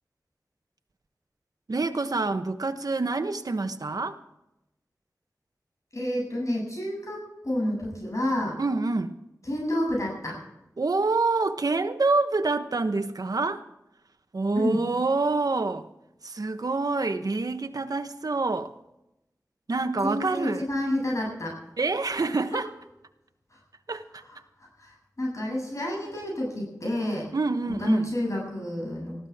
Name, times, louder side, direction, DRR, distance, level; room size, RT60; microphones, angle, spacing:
voice 1, 1.7-4.2 8.6-9.1 10.8-13.6 14.3-15.9 16.2-18.7 19.7-20.6 21.8-22.7 23.9-24.2 27.3-28.1, right 3 dB, 75° right, 1.2 m, -27 dB
voice 2, 5.9-8.6 9.4-10.4 14.5-14.8 20.0-21.5 23.5-23.6 24.2-27.3 27.7-29.2, left 1 dB, 55° left, 7.9 m, -29 dB
20.5 x 15.0 x 3.7 m
wide cardioid pair, 70°, 6 cm